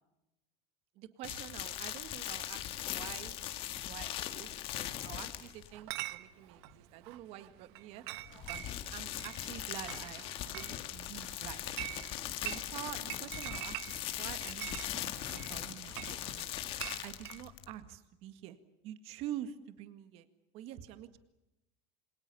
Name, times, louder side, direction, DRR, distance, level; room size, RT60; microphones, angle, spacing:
voice 1, 0.9-3.4 3.9-8.0 8.5-10.2 10.5-11.8 12.4-16.6 17.0-18.6 18.8-20.3 20.5-21.2, right 12 dB, 50° right, 11 dB, 1.9 m, -47 dB
sound 1, 1.2-5.7 8.2-17.7, left 12 dB, 45° left, 2.0 m, -40 dB
Chatter / Chink clink, 5.7-17.4, right 18 dB, 85° right, 1.3 m, -46 dB
27.5 x 26.0 x 7.0 m, 0.94 s
cardioid pair, 170°, 13 cm